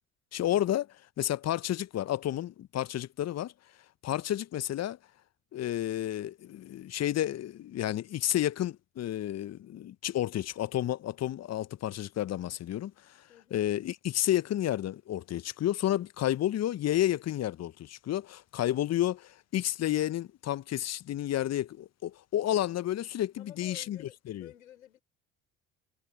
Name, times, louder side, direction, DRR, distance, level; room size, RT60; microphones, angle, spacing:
voice 1, 0.3-0.9 1.2-3.5 4.0-5.0 5.5-12.9 13.5-24.0 24.3-24.5, left 12 dB, 40° left, 1.0 m, -31 dB
voice 2, 13.3-13.6 23.4-25.0, left 11 dB, 80° left, 4.5 m, -52 dB
figure-of-eight pair, 55°, 40 cm